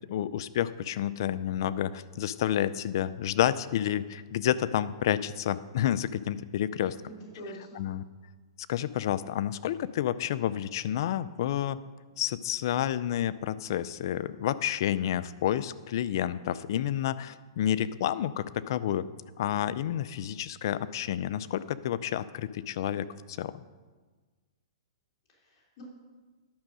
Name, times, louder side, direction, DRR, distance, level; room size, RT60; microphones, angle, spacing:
voice 1, 0.1-7.0 7.8-8.0 8.7-11.8 12.2-19.0 19.4-23.6, left 11 dB, 55° left, 16 dB, 0.4 m, -30 dB
voice 2, 7.1-7.9 25.3-25.8, equal, 35° left, -5 dB, 3.0 m, -45 dB
10.5 x 6.4 x 6.1 m, 1.4 s
hypercardioid pair, 145°, 3 cm